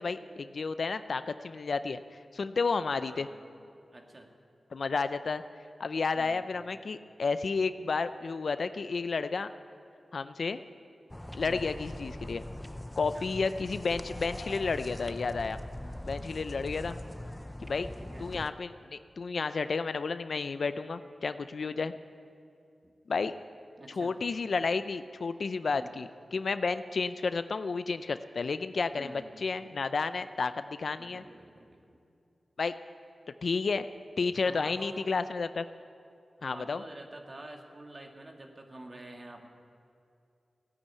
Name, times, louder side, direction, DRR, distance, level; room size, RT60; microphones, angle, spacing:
voice 1, 0.0-3.3 4.7-5.4 5.8-9.5 10.1-10.6 11.3-12.4 13.0-15.6 16.0-16.9 17.6-17.9 18.2-21.9 23.1-23.3 23.9-31.2 32.6-32.7 33.4-33.9 34.2-35.6 36.4-36.8, left 4 dB, 70° left, 12 dB, 0.5 m, -31 dB
voice 2, 3.1-3.4 3.9-4.3 6.1-6.5 11.4-11.7 12.9-13.3 15.7-16.1 18.0-18.3 22.8-22.9 23.8-24.2 25.7-26.0 28.9-29.5 31.0-32.0 34.4-35.1 36.4-39.5, right 1 dB, 40° right, 2 dB, 2.1 m, -48 dB
sound 1, 11.1-18.5, left 1 dB, 10° left, 0.5 m, -41 dB
16.5 x 9.9 x 8.4 m, 2.5 s
cardioid pair, 55°, 0 cm